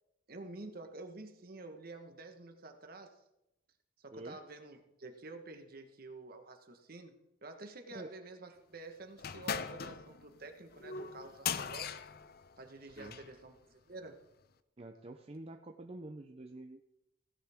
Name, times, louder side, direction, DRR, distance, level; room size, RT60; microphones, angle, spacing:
voice 1, 0.3-3.2 4.0-7.1 7.4-12.0 12.6-14.2, right 2 dB, 50° right, 6 dB, 1.3 m, -49 dB
sound 1, 9.2-13.3, left 7 dB, 50° left, 0.5 m, -40 dB
voice 2, 14.8-16.8, right 2 dB, 30° right, 4 dB, 0.6 m, -47 dB
16.0 x 10.5 x 3.6 m, 0.88 s
head